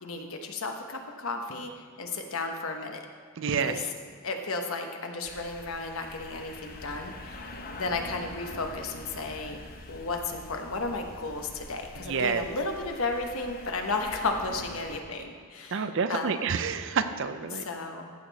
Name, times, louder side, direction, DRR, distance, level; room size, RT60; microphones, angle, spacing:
voice 1, 0.0-3.0 3.6-3.8 4.2-9.6 9.9-16.3 17.5-18.1, left 3 dB, 70° left, 4 dB, 1.1 m, -34 dB
voice 2, 3.4-3.8 12.1-12.4 15.7-17.6, right 5 dB, 60° right, 10 dB, 0.5 m, -28 dB
sound 1, 5.2-15.0, left 2 dB, 40° left, 0.8 m, -44 dB
14.5 x 6.7 x 4.1 m, 2.1 s
head